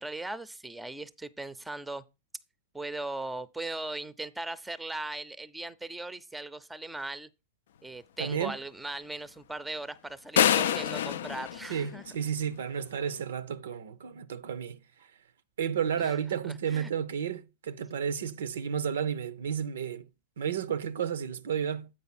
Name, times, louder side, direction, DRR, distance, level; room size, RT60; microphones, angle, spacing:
voice 1, 0.0-2.0 2.7-7.3 7.8-12.1 16.0-16.2 16.5-16.9, right 2 dB, 5° right, 0.5 m, -38 dB
voice 2, 8.2-8.6 11.7-14.8 15.6-20.1 20.4-21.9, right 8 dB, 75° right, 0.5 m, -32 dB
sound 1, 10.4-12.5, left 10 dB, 70° left, 0.3 m, -27 dB
8.5 x 5.1 x 4.2 m
hypercardioid pair, 110°, 0 cm